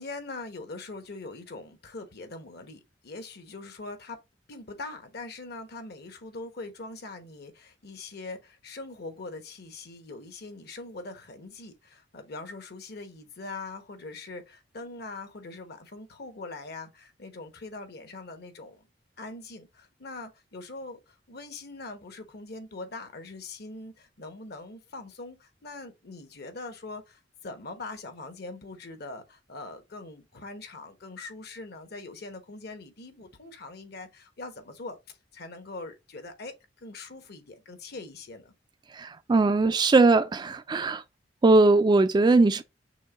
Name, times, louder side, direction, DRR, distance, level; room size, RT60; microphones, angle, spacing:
voice 1, 0.0-4.2 4.5-18.8 19.2-35.0 35.3-38.5, left 3 dB, 60° left, 1.0 m, -42 dB
voice 2, 38.9-41.0 41.4-42.6, right 3 dB, 25° right, 0.3 m, -20 dB
6.2 x 2.2 x 3.7 m
head